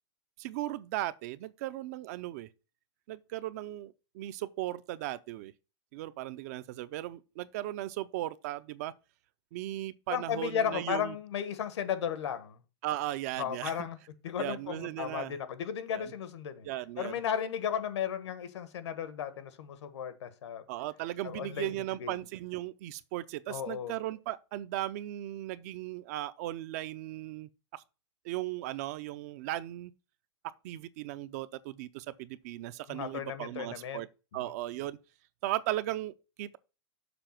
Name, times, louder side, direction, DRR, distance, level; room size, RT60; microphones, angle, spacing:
voice 1, 0.4-2.5 3.1-5.5 5.9-8.9 9.5-11.2 12.8-13.7 14.4-15.3 15.9-16.1 16.6-17.1 20.7-27.8 28.2-29.9 30.6-34.1 34.3-35.0 35.4-36.6, right 15 dB, 35° right, 0.4 m, -37 dB
voice 2, 10.1-12.6 13.4-14.0 14.2-16.7 17.0-20.6 21.2-21.7 22.0-22.2 23.5-23.9 32.9-34.0 34.3-34.5, left 8 dB, 85° left, 1.4 m, -35 dB
6.9 x 4.9 x 5.9 m
supercardioid pair, 170°, 14 cm